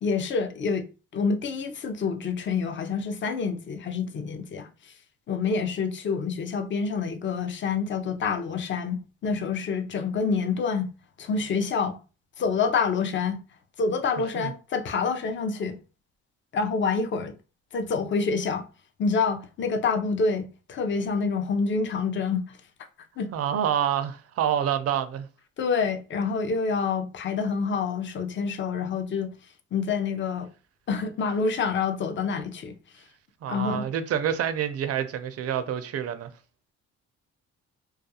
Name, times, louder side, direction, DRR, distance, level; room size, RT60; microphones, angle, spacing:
voice 1, 0.0-0.9 1.1-4.7 5.3-10.9 11.2-11.9 12.4-13.4 13.8-15.8 16.5-17.3 17.7-18.7 19.0-22.6 23.2-23.3 25.6-29.3 29.7-30.5 30.9-32.7 33.5-33.9, left 5 dB, 40° left, 0.5 m, -27 dB
voice 2, 23.3-25.3 33.4-36.3, right 9 dB, 55° right, 0.4 m, -27 dB
2.4 x 2.2 x 2.7 m
cardioid pair, 90°, 30 cm